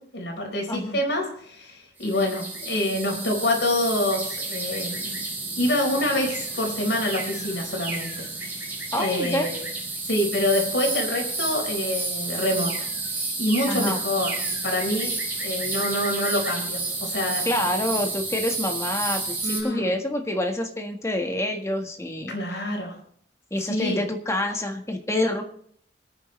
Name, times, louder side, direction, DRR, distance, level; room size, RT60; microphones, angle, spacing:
voice 1, 0.1-5.1 5.6-8.3 8.9-9.6 10.1-12.9 13.1-15.1 15.4-17.4 19.4-19.9 22.3-23.0 23.7-24.0, left 1 dB, 80° left, 1 dB, 4.4 m, -26 dB
voice 2, 0.7-1.0 8.9-9.5 13.7-14.0 17.4-22.3 23.5-25.4, left 1 dB, 15° left, 3 dB, 1.5 m, -27 dB
sound 1, 2.0-19.6, right 3 dB, 10° right, 4.6 m, -31 dB
26.0 x 9.3 x 3.3 m, 0.63 s
head